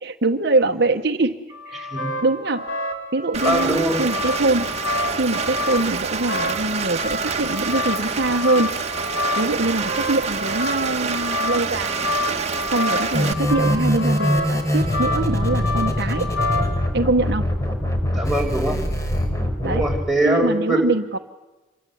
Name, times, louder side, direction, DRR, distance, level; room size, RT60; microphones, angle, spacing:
voice 1, 0.0-1.4 1.7-1.9 2.2-2.6 3.1-4.7 5.2-8.7 9.4-12.2 12.7-16.3 16.9-17.4 19.6-19.8 20.2-21.2, right 2 dB, 60° right, 6 dB, 1.2 m, -23 dB
sound 1, 1.5-16.9, left 2 dB, 75° left, 6.0 m, -29 dB
voice 2, 1.7-2.2 3.4-4.0 18.1-18.8 19.6-20.8, right 1 dB, ahead, 0 dB, 5.8 m, -22 dB
Rain, 3.3-13.3, right 5 dB, 35° right, 1.8 m, -27 dB
sound 2, 13.1-20.0, equal, 15° left, 4.2 m, -23 dB
28.0 x 23.5 x 8.7 m, 1.1 s
head